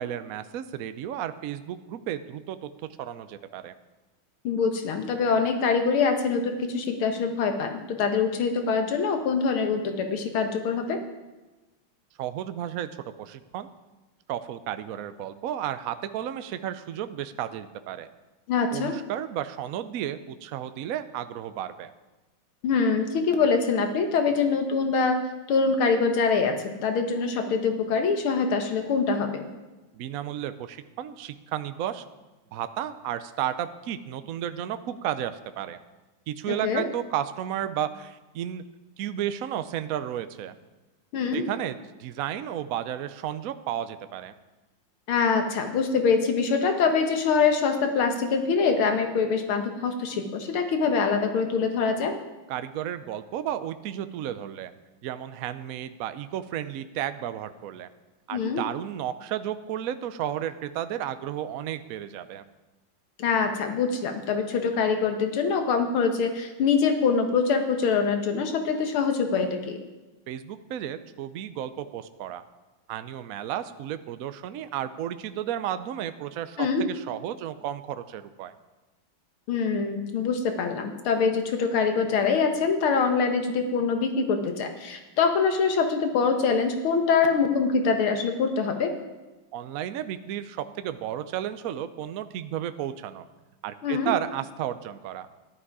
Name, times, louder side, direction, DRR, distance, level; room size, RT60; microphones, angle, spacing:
voice 1, 0.0-2.7 3.0-3.7 12.2-13.7 14.3-18.1 18.7-21.9 29.9-32.0 32.5-35.8 36.3-38.6 39.0-40.5 41.3-44.3 52.5-54.7 55.0-57.9 58.3-62.4 70.3-72.4 72.9-78.5 89.5-93.3 93.6-95.3, right 10 dB, 85° right, 11 dB, 0.7 m, -33 dB
voice 2, 4.4-11.0 18.5-18.9 22.6-25.2 25.5-29.5 36.5-36.8 41.1-41.4 45.1-52.2 58.3-58.6 63.2-69.8 76.6-76.9 79.5-88.9 93.8-94.1, left 5 dB, 80° left, 5 dB, 2.2 m, -24 dB
14.0 x 11.0 x 4.8 m, 1.1 s
omnidirectional pair, 2.3 m